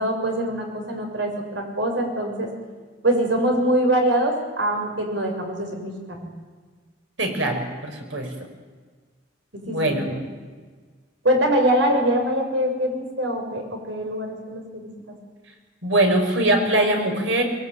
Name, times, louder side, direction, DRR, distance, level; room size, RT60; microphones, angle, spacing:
voice 1, 0.0-2.5 3.0-6.3 9.5-10.2 11.2-14.9, right 1 dB, 70° right, 3 dB, 6.8 m, -23 dB
voice 2, 7.2-8.3 9.6-10.1 15.8-17.4, right 1 dB, 85° right, 4 dB, 5.6 m, -22 dB
23.5 x 22.0 x 9.3 m, 1.5 s
head